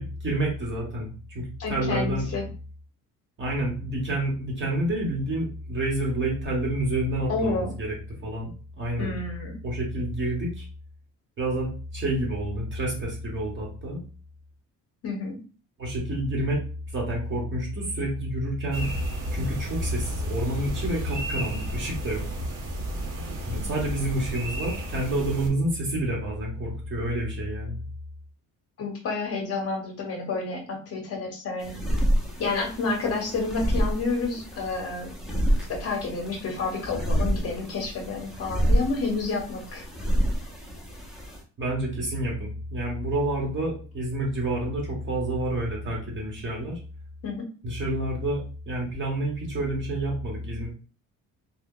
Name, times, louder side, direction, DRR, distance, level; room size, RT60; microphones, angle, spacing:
voice 1, 0.0-2.3 3.4-8.0 8.2-9.2 9.6-10.6 11.4-14.0 15.8-16.6 16.9-18.9 19.3-22.3 23.4-27.8 41.6-46.8 47.6-50.7, right 1 dB, 35° right, -2 dB, 1.1 m, -29 dB
voice 2, 1.6-2.4 7.3-7.7 9.0-9.6 15.0-15.4 23.5-23.8 28.8-31.7 32.4-35.1 35.7-39.8 47.2-47.4, left 3 dB, 50° left, 1 dB, 0.8 m, -30 dB
sound 1, 18.7-25.5, equal, 85° right, 1.0 m, -32 dB
sound 2, 31.6-41.4, equal, ahead, 0.6 m, -28 dB
2.8 x 2.3 x 3.7 m, 0.37 s
cardioid pair, 155°, 31 cm